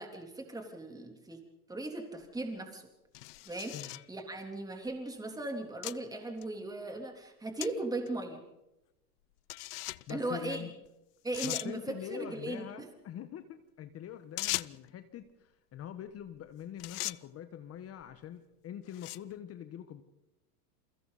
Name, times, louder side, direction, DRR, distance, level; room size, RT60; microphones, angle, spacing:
voice 1, 0.0-1.4 1.7-2.9 3.4-8.4 10.1-10.7 11.2-12.9, right 2 dB, 10° right, 4 dB, 3.3 m, -38 dB
sound 1, 2.2-2.3 3.1-4.1 4.9-5.0 5.8-6.0 6.4-6.5 7.6-7.7 8.1-8.2 9.5-10.1 10.9-11.0 11.3-11.7 14.4-14.9 16.3-16.5 16.8-17.2 18.0-18.2 18.9-19.3, left 20 dB, 70° left, 0.7 m, -38 dB
voice 2, 10.1-10.7 11.4-20.0, left 10 dB, 30° left, 10 dB, 1.3 m, -44 dB
29.0 x 23.0 x 4.1 m, 0.94 s
supercardioid pair, 125°, 48 cm